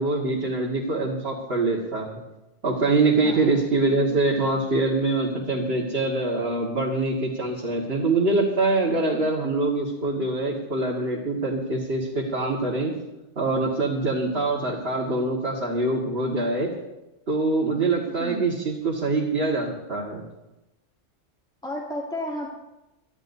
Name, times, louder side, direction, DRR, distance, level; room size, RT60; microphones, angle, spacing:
voice 1, 0.0-2.2 2.6-12.9 13.4-16.7 17.3-20.2, right 2 dB, 60° right, -4 dB, 2.1 m, -24 dB
voice 2, 3.2-4.7 18.2-18.6 21.6-22.5, left 1 dB, 5° left, -4 dB, 2.6 m, -35 dB
23.5 x 13.0 x 2.7 m, 0.98 s
omnidirectional pair, 1.2 m